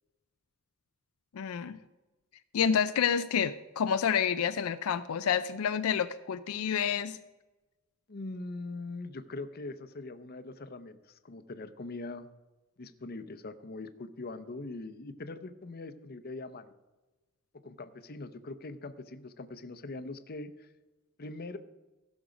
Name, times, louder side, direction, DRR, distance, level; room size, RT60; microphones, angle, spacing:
voice 1, 1.3-1.8 2.5-7.2, left 7 dB, 80° left, 11 dB, 0.4 m, -29 dB
voice 2, 8.1-12.3 12.8-16.7 17.6-20.7 21.2-21.6, left 2 dB, 45° left, 12 dB, 0.7 m, -42 dB
15.5 x 6.3 x 5.1 m, 1.1 s
head